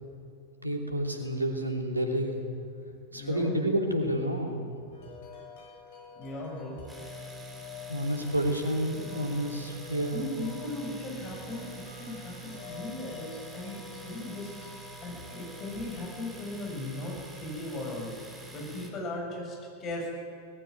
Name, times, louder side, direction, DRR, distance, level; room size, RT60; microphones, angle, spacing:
voice 1, 0.6-2.4 3.1-4.7 7.9-10.3, right 1 dB, 80° right, 2 dB, 3.0 m, -29 dB
voice 2, 2.9-3.6 6.1-6.9 10.1-20.1, left 2 dB, 30° left, -1 dB, 7.0 m, -38 dB
Wind chime, 4.9-18.9, left 5 dB, 55° left, 6.9 m, -49 dB
Domestic sounds home sounds, 6.9-18.9, right 2 dB, 10° right, 3.7 m, -46 dB
19.5 x 15.5 x 9.6 m, 2.6 s
figure-of-eight pair, 90°, 0 cm